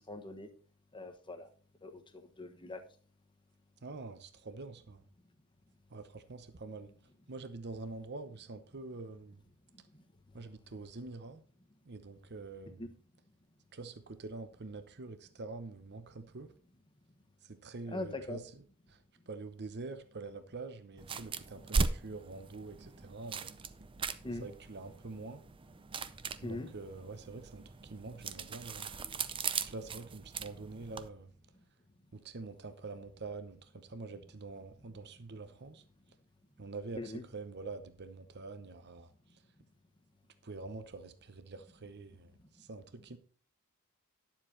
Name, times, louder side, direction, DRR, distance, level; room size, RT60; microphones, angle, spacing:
voice 1, 0.1-0.5 0.9-1.5 1.8-2.8 9.9-10.0 12.8-12.9 17.9-18.4 24.2-24.4 26.4-26.7 36.9-37.2, left 2 dB, 20° left, 1.3 m, -41 dB
voice 2, 3.8-5.0 5.9-6.9 7.3-9.4 10.3-11.4 11.9-12.9 13.7-16.5 17.4-18.6 18.9-19.0 19.3-23.5 24.4-25.4 26.4-28.9 29.7-31.3 32.1-35.8 36.6-39.4 40.4-43.2, right 3 dB, 50° right, 0.8 m, -46 dB
sound 1, 21.0-31.1, right 4 dB, 25° right, 0.5 m, -39 dB
10.5 x 7.4 x 4.4 m
head